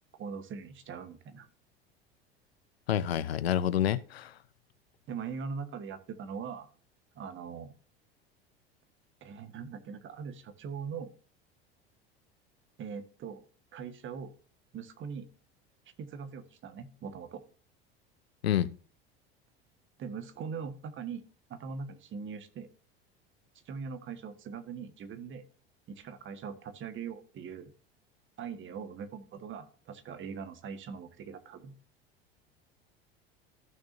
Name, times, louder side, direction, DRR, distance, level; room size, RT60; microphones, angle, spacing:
voice 1, 0.2-1.5 5.1-6.7 7.1-7.7 9.2-11.1 12.8-13.4 13.7-14.3 14.7-15.3 16.0-17.4 20.0-22.7 23.6-25.4 25.9-27.7 28.4-31.7, right 6 dB, 40° right, 1.5 m, -41 dB
voice 2, 2.9-4.3 18.4-18.7, left 10 dB, 85° left, 0.6 m, -28 dB
14.5 x 6.4 x 2.7 m
hypercardioid pair, 75°, 30 cm